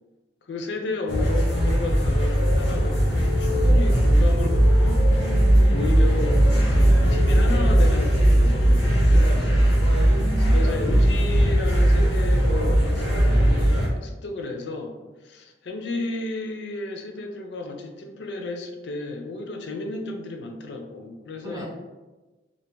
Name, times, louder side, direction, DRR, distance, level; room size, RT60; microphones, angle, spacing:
voice 1, 0.5-5.0 5.7-9.8 10.5-14.9 15.2-21.7, left 2 dB, 70° left, 5 dB, 0.4 m, -33 dB
sound 1, 1.1-13.9, equal, 90° left, 0.8 m, -19 dB
voice 2, 5.1-5.8 10.1-11.1 21.4-21.7, right 1 dB, 20° right, -2 dB, 0.5 m, -37 dB
2.5 x 2.2 x 2.9 m, 1.2 s
head